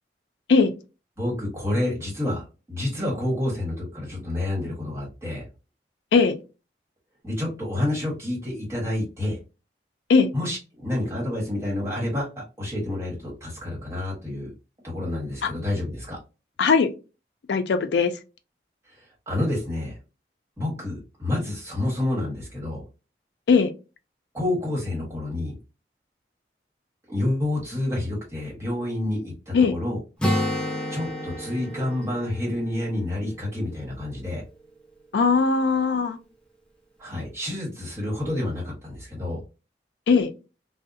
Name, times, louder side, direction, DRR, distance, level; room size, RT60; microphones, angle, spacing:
voice 1, 1.2-5.4 7.2-9.4 10.3-14.5 14.8-16.2 18.9-20.0 20.6-22.8 24.3-25.5 27.1-30.0 30.9-34.4 37.0-39.4, left 1 dB, 15° right, 1.2 m, -29 dB
voice 2, 16.6-16.9 17.5-18.1 23.5-23.7 29.5-29.7 35.1-36.2 40.1-40.3, left 5 dB, 80° left, 0.4 m, -19 dB
Acoustic guitar, 30.2-33.9, equal, 5° left, 0.4 m, -30 dB
2.6 x 2.0 x 2.5 m
head